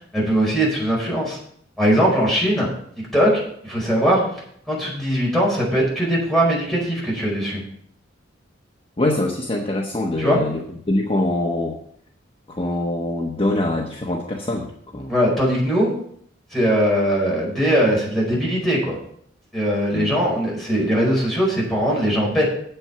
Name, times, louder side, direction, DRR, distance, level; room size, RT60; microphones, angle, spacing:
voice 1, 0.0-1.4 1.8-2.7 3.1-4.2 4.7-7.6 10.2-10.4 15.1-15.9 16.5-19.0 19.5-22.5, equal, ahead, -5 dB, 5.0 m, -20 dB
voice 2, 9.0-11.8 12.5-14.7 14.9-15.1 19.9-20.2, left 1 dB, 30° left, 0 dB, 1.1 m, -24 dB
9.0 x 7.9 x 5.7 m, 0.65 s
head